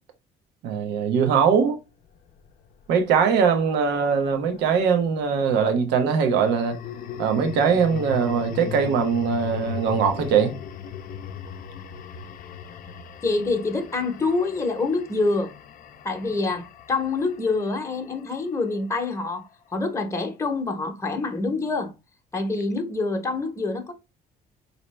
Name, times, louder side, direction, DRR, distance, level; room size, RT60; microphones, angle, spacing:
voice 1, 0.6-1.8 2.9-6.8 7.2-10.6, right 6 dB, 85° right, 0.8 m, -21 dB
sound 1, 2.2-4.7 6.3-18.6, left 8 dB, 55° left, 0.5 m, -38 dB
voice 2, 13.2-15.5 16.0-21.9 22.3-23.9, left 3 dB, 15° left, 0.8 m, -26 dB
4.3 x 2.8 x 3.1 m
cardioid pair, 110°, 17 cm